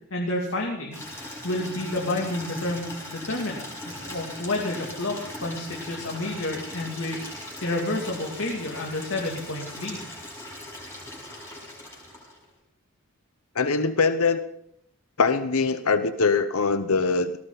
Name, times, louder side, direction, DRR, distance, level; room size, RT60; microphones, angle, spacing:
voice 1, 0.1-10.0, left 2 dB, 60° left, -1 dB, 2.7 m, -30 dB
Water tap faucet / Liquid, 0.9-12.5, left 1 dB, 10° left, 6.1 m, -39 dB
voice 2, 13.6-14.4 15.2-17.4, left 4 dB, 80° left, 11 dB, 0.8 m, -22 dB
19.0 x 18.0 x 4.0 m, 0.73 s
head